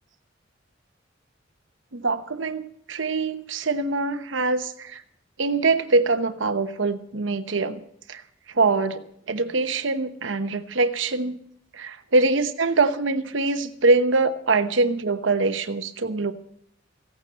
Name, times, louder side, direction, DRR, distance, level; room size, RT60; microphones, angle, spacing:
voice 1, 1.9-5.0 5.4-7.8 8.1-8.2 8.6-9.0 9.3-11.4 11.8-16.3, right 3 dB, 75° right, 9 dB, 1.0 m, -23 dB
16.0 x 9.2 x 8.0 m, 0.71 s
head